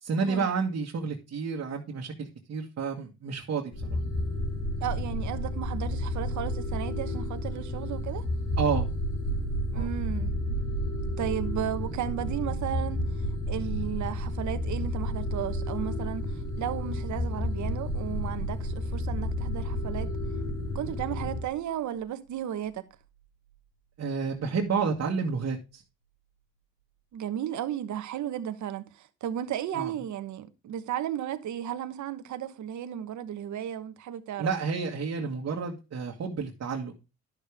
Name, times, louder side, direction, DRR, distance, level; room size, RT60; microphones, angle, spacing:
voice 1, 0.0-4.0 8.6-8.9 9.7-9.9 24.0-25.8 29.7-29.9 34.4-36.9, right 5 dB, 55° right, 1.8 m, -30 dB
sound 1, 3.7-21.5, left 1 dB, 55° left, 4.0 m, -32 dB
voice 2, 4.8-8.3 9.7-10.6 10.9-13.1 13.5-20.1 20.7-22.9 27.1-34.5, right 10 dB, 70° right, 1.2 m, -34 dB
sound 2, 8.5-22.0 24.7-24.8, right 6 dB, 90° left, 5.6 m, -39 dB
11.0 x 6.7 x 3.5 m
cardioid pair, 90°, 30 cm